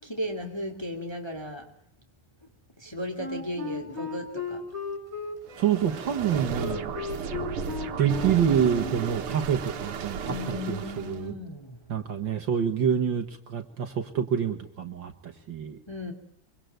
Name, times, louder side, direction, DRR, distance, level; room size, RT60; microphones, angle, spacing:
voice 1, 0.0-1.7 2.8-4.6 7.8-8.0 10.3-11.8 15.9-16.1, left 1 dB, 10° left, 4 dB, 2.9 m, -35 dB
Wind instrument woodwind instrument, 3.2-9.1, left 4 dB, 30° right, 5.1 m, -36 dB
sound 1, 5.5-11.3, right 6 dB, 80° right, 2.4 m, -34 dB
voice 2, 5.6-6.9 8.0-11.4 11.9-15.8, right 8 dB, 60° right, 7 dB, 2.1 m, -27 dB
24.5 x 24.5 x 9.3 m, 0.67 s
omnidirectional pair, 2.4 m